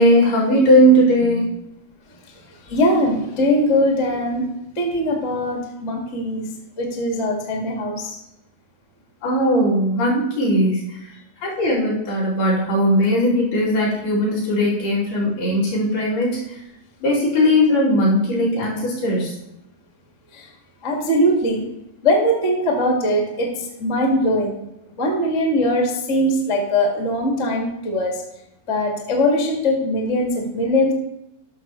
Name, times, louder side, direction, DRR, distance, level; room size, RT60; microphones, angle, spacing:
voice 1, 0.0-1.5 9.2-10.8 11.4-16.4 17.0-19.3, equal, 75° left, -8 dB, 5.0 m, -18 dB
voice 2, 2.7-4.5 4.8-6.4 6.8-8.2 20.8-21.6 22.0-23.5 23.8-24.6 25.0-28.1 28.7-30.9, left 1 dB, 40° left, -1 dB, 0.9 m, -21 dB
12.0 x 6.3 x 3.1 m, 0.87 s
omnidirectional pair, 4.4 m